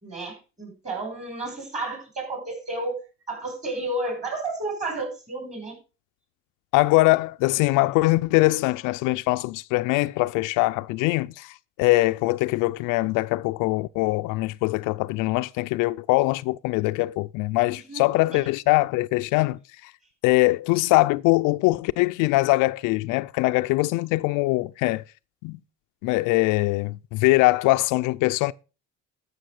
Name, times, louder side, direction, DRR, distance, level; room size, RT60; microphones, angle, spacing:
voice 1, 0.0-3.0 3.3-5.8 17.7-18.0 18.3-18.4, right 2 dB, 20° right, 5.9 m, -32 dB
voice 2, 6.7-19.9 20.2-25.0 25.4-25.6 26.0-28.5, left 21 dB, 75° left, 0.5 m, -22 dB
13.0 x 6.3 x 4.9 m
cardioid pair, 115°, 32 cm